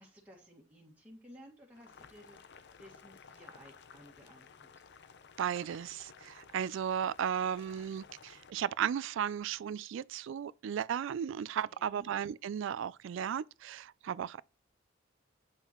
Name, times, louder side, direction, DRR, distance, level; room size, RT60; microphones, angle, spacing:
voice 1, 0.0-2.4 2.7-4.8 11.7-12.0, equal, 10° right, 1.8 m, -56 dB
Boiling, 1.7-8.5, left 5 dB, 60° left, 0.6 m, -55 dB
voice 2, 5.4-14.4, right 8 dB, 65° right, 0.3 m, -35 dB
8.9 x 5.6 x 3.0 m
head